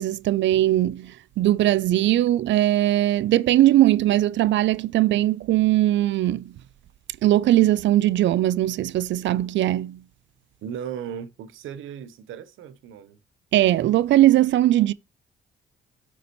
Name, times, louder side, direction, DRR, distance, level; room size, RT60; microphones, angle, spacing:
voice 1, 0.0-6.5 7.2-10.0 13.5-14.9, right 14 dB, 65° right, 0.4 m, -20 dB
voice 2, 10.6-13.2, right 8 dB, 85° right, 0.9 m, -36 dB
9.4 x 5.7 x 3.0 m
cardioid pair, 90°, 20 cm